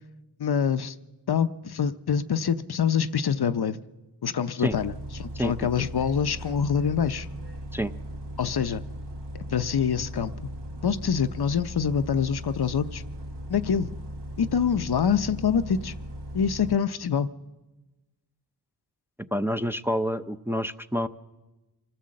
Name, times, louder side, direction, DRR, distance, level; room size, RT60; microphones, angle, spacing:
voice 1, 0.4-0.9 1.3-3.8 4.2-7.3 8.4-8.8 9.3-10.3 10.8-13.0 13.5-13.9 14.4-15.9 16.3-17.3, left 7 dB, 65° left, 0.7 m, -25 dB
Bus, 4.7-16.8, right 1 dB, 75° right, 1.5 m, -38 dB
voice 2, 19.3-21.1, equal, 5° right, 0.6 m, -28 dB
25.5 x 14.5 x 7.6 m
wide cardioid pair, 70°, 41 cm